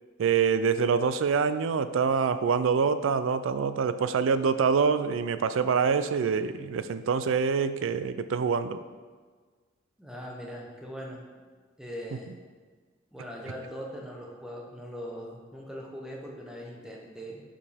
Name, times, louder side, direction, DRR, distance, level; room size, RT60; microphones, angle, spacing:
voice 1, 0.2-8.8, right 6 dB, 80° right, 12 dB, 0.4 m, -25 dB
voice 2, 10.0-11.2 11.8-12.3 13.1-17.4, equal, 5° right, -2 dB, 0.8 m, -40 dB
6.8 x 5.1 x 3.5 m, 1.5 s
head